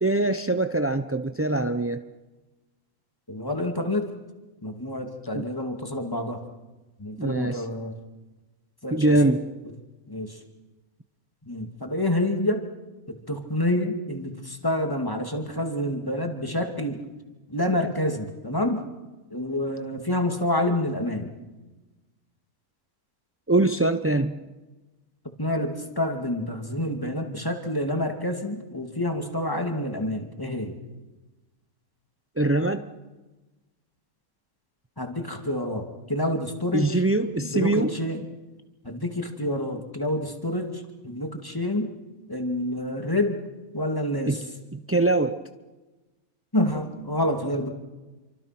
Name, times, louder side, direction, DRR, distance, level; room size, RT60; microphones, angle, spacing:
voice 1, 0.0-2.0 5.3-5.4 7.2-7.6 8.9-9.5 23.5-24.4 32.4-32.9 36.7-37.9 44.3-44.4 44.7-45.4, right 2 dB, 20° right, 9 dB, 0.4 m, -23 dB
voice 2, 3.3-4.1 4.6-6.4 7.0-7.9 8.8-9.4 10.1-10.4 11.5-12.7 13.1-17.0 17.5-18.8 19.3-21.3 25.4-30.8 35.0-37.0 37.4-38.3 38.8-41.9 42.3-43.4 43.7-44.4 46.5-47.7, left 1 dB, 15° left, 4 dB, 2.4 m, -28 dB
28.5 x 25.0 x 6.0 m, 1.2 s
omnidirectional pair, 1.6 m